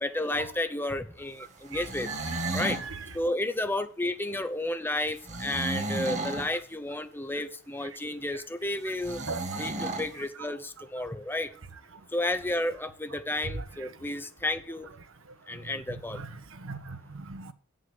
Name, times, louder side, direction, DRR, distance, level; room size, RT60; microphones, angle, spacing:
voice 1, 0.0-2.1 2.5-2.8 3.1-9.2 9.6-11.5 12.1-14.9 15.5-16.2, left 1 dB, 10° left, 0.7 m, -32 dB
sound 1, 1.6-2.9 5.2-6.5 9.0-10.1, right 2 dB, 35° right, 1.6 m, -33 dB
voice 2, 16.1-17.5, right 4 dB, 75° right, 1.1 m, -38 dB
7.8 x 7.8 x 6.6 m
head